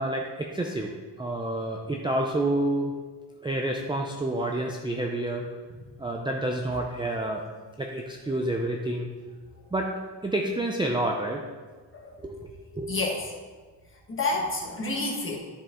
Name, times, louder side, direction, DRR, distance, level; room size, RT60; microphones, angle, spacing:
voice 1, 0.0-2.9 3.4-5.5 6.0-7.4 7.8-9.1 9.7-9.9 10.2-11.4 12.2-12.9, right 1 dB, 10° right, 1 dB, 0.4 m, -29 dB
voice 2, 12.9-13.3 14.1-15.4, left 2 dB, 30° left, -2 dB, 1.5 m, -29 dB
12.5 x 5.3 x 3.7 m, 1.4 s
wide cardioid pair, 175°, 43 cm